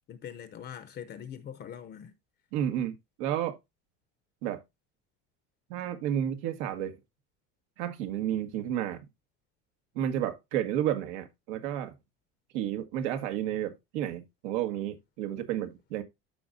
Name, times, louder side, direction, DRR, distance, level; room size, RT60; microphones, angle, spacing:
voice 1, 0.0-2.1, left 9 dB, 30° left, 0.7 m, -43 dB
voice 2, 2.5-3.6 4.4-4.6 5.7-7.0 7.8-9.0 10.0-11.9 12.5-16.0, right 11 dB, 85° right, 1.8 m, -31 dB
13.0 x 5.2 x 2.6 m
cardioid pair, 150°, 32 cm